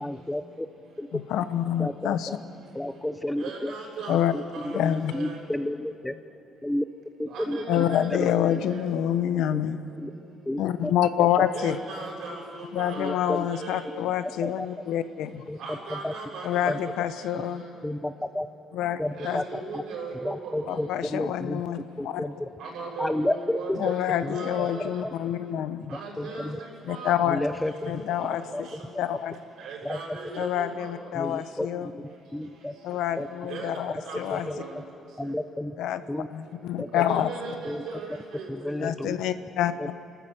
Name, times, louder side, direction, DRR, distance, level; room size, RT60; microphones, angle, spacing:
voice 1, 0.0-0.7 1.0-1.1 1.8-2.4 2.7-3.7 4.1-6.1 6.6-6.8 7.2-7.8 8.1-8.5 9.5-9.6 10.0-10.1 10.5-10.9 13.0-13.5 14.4-14.7 15.5-16.1 16.7-16.8 17.8-18.5 19.0-19.4 19.7-19.8 20.2-21.6 22.0-22.5 23.0-23.8 24.2-24.7 26.2-26.6 27.3-27.9 28.5-28.6 29.8-30.0 31.1-31.7 31.9-32.0 32.3-32.7 33.2-33.3 34.3-34.6 35.2-35.7 36.1-36.3 36.8-37.3 37.6-37.8 38.5-39.2 39.8-39.9, left 1 dB, 5° left, 12 dB, 0.5 m, -31 dB
voice 2, 1.1-2.4 4.1-4.3 4.7-5.1 7.7-9.8 10.6-11.8 12.7-15.4 16.4-17.6 18.7-19.4 20.7-22.2 23.8-25.8 26.8-27.4 27.8-28.7 29.0-29.3 30.4-31.9 32.8-34.5 35.8-36.0 36.3-37.3 38.8-39.7, left 11 dB, 90° left, 12 dB, 1.0 m, -27 dB
voice 3, 3.4-4.2 4.6-4.7 5.1-5.3 7.3-8.3 8.7-8.9 11.5-13.1 13.5-13.8 15.6-16.7 19.2-20.7 22.6-24.8 25.9-26.5 26.9-27.1 29.6-30.9 33.5-33.7 34.1-34.2 34.6-34.7 37.1-38.1 38.4-38.5, right 4 dB, 70° right, -2 dB, 6.9 m, -38 dB
30.0 x 13.5 x 8.1 m, 2.5 s
cardioid pair, 135°, 0 cm